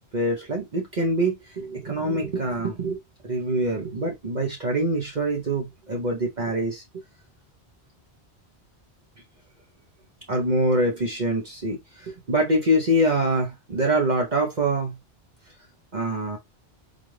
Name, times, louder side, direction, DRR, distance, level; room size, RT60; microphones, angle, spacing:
voice 1, 0.1-6.8 10.3-15.0 15.9-16.4, right 1 dB, 45° right, 0.9 m, -25 dB
4.0 x 2.4 x 3.2 m
omnidirectional pair, 1.1 m